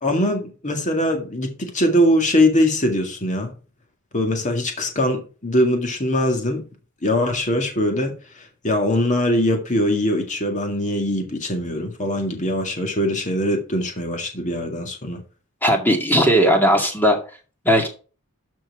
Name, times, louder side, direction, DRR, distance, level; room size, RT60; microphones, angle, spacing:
voice 1, 0.0-3.5 4.1-6.6 7.0-15.2, left 1 dB, 35° left, 2.0 m, -22 dB
voice 2, 15.6-17.2 17.6-17.9, equal, 10° left, 2.1 m, -17 dB
12.5 x 4.5 x 4.8 m
head